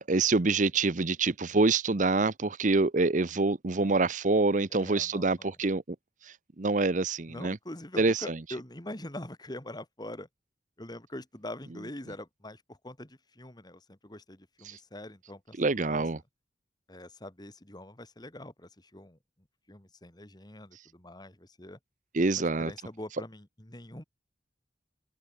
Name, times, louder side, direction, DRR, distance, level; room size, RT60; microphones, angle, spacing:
voice 1, 0.0-6.0 6.2-7.6 8.0-8.4 14.7-14.8 15.6-16.2 22.1-22.7, right 3 dB, 45° right, 0.8 m, -26 dB
voice 2, 4.7-5.5 7.3-10.3 10.8-15.6 15.9-16.0 16.9-19.2 19.7-21.8 22.4-24.0, left 1 dB, 25° left, 2.8 m, -44 dB
open air
head